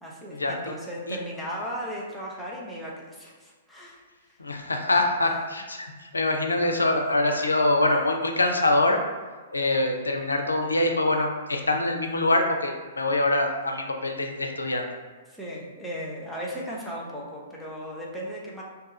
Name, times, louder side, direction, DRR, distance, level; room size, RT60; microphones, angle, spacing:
voice 1, 0.0-4.4 15.3-18.6, equal, 5° left, -5 dB, 0.6 m, -36 dB
voice 2, 4.4-9.0 9.5-14.9, left 2 dB, 75° left, 3 dB, 0.4 m, -24 dB
2.7 x 2.3 x 3.8 m, 1.4 s
figure-of-eight pair, 110°, 0 cm